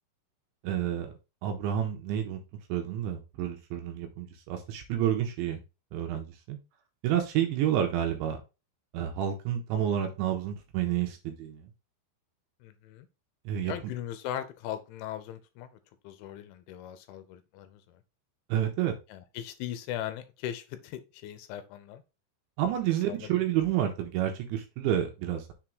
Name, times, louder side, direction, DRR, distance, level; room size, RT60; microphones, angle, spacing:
voice 1, 0.6-1.1 1.4-2.4 2.7-5.6 5.9-6.6 7.0-8.4 8.9-11.7 13.5-13.7 18.5-19.0 22.6-25.5, right 10 dB, 80° right, 3.0 m, -29 dB
voice 2, 12.6-13.1 13.6-15.7 16.0-17.8 19.1-22.0 22.8-23.4, left 11 dB, 80° left, 3.0 m, -39 dB
7.0 x 3.7 x 4.5 m
omnidirectional pair, 5.8 m